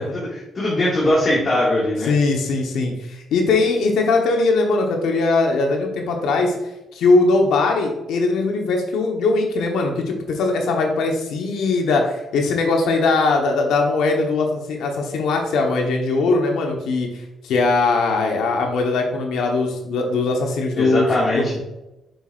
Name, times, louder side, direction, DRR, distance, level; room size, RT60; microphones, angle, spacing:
voice 1, 0.0-2.1 20.8-21.6, left 1 dB, 40° left, -6 dB, 2.1 m, -21 dB
voice 2, 2.1-6.5 6.9-17.1 17.4-21.1 21.3-21.6, left 3 dB, 80° left, 2 dB, 1.1 m, -20 dB
6.8 x 6.1 x 2.5 m, 0.94 s
cardioid pair, 90°, 0 cm